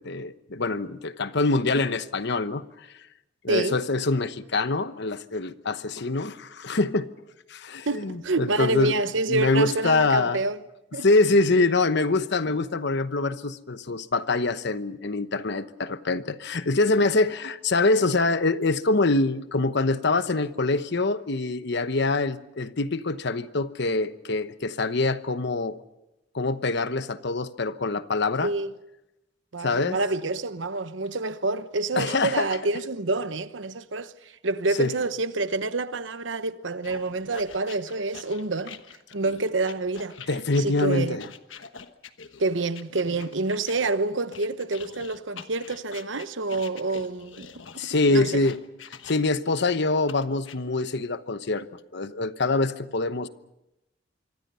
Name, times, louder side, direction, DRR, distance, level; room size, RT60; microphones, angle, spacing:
voice 1, 0.0-2.9 3.4-7.1 7.5-8.9 9.3-10.4 11.0-25.8 26.3-28.5 29.6-30.0 32.0-32.5 34.8-34.9 40.3-41.3 47.8-48.6 49.0-51.7 51.9-53.3, left 3 dB, 65° left, 1.0 m, -24 dB
voice 2, 3.5-3.8 7.9-10.6 10.9-11.0 28.4-28.7 29.5-34.1 34.4-38.8 39.1-40.2 40.6-41.2 42.4-47.5 47.7-48.4, right 3 dB, 75° right, 1.0 m, -27 dB
sound 1, 36.8-43.8 44.3-49.5 50.1-50.6, left 6 dB, 90° left, 1.3 m, -45 dB
26.0 x 24.0 x 5.6 m
head